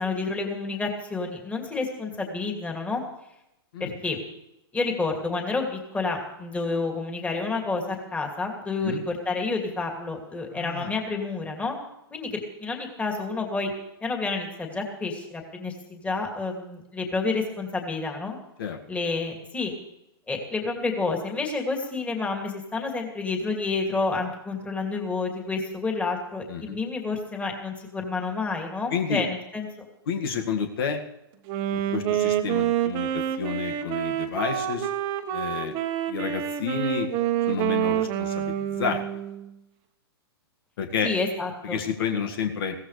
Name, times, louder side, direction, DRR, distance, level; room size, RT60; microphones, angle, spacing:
voice 1, 0.0-3.0 3.8-4.2 4.7-11.8 12.1-13.7 14.0-18.4 18.9-19.7 20.3-29.9 41.0-41.8, left 3 dB, 10° left, 1 dB, 2.6 m, -29 dB
voice 2, 10.5-10.9 18.6-18.8 26.5-26.8 28.9-29.2 30.1-31.0 31.7-34.9 35.3-35.7 36.1-37.1 37.5-39.0 40.8-41.1 41.6-42.8, left 6 dB, 60° left, 4 dB, 1.9 m, -30 dB
Wind instrument woodwind instrument, 31.5-39.5, right 11 dB, 35° right, 1.4 m, -27 dB
21.5 x 16.5 x 3.3 m, 0.87 s
hypercardioid pair, 145°, 13 cm